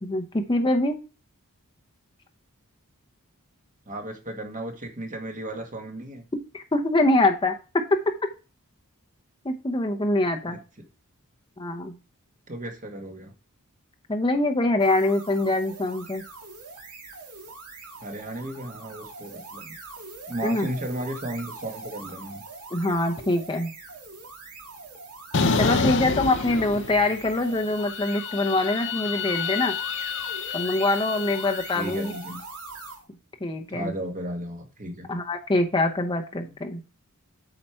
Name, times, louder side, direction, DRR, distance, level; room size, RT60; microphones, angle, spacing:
voice 1, 0.0-1.0 6.5-7.8 9.4-10.6 11.6-12.0 14.1-16.2 20.4-20.7 22.7-23.7 25.6-29.7 30.5-32.1 33.4-33.9 35.1-36.8, left 2 dB, 20° left, 4 dB, 0.8 m, -24 dB
voice 2, 3.9-6.2 10.5-10.6 12.5-13.3 18.0-19.8 20.3-22.4 25.5-26.1 31.7-32.4 33.7-35.1 36.4-36.5, right 1 dB, 35° right, 3 dB, 1.7 m, -35 dB
sound 1, 14.8-33.1, right 3 dB, 85° right, 2.2 m, -43 dB
sound 2, 25.3-27.3 27.6-31.9, left 5 dB, 55° left, 0.7 m, -28 dB
8.6 x 4.9 x 4.5 m, 0.32 s
head